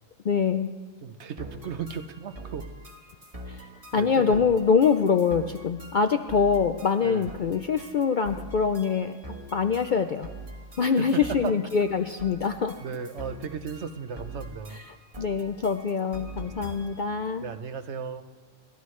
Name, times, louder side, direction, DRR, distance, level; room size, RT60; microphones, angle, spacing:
voice 1, 0.2-0.7 3.5-3.6 3.9-9.1 9.5-10.3 10.8-12.8 15.2-17.4, left 6 dB, 55° left, 7 dB, 0.5 m, -24 dB
voice 2, 1.0-2.7 3.9-4.5 7.0-7.3 10.8-11.5 12.8-14.8 17.4-18.2, right 6 dB, 65° right, 10 dB, 1.0 m, -35 dB
sound 1, 1.4-17.1, right 1 dB, 30° right, 1.5 m, -44 dB
27.5 x 13.0 x 3.2 m, 1.6 s
omnidirectional pair, 1.3 m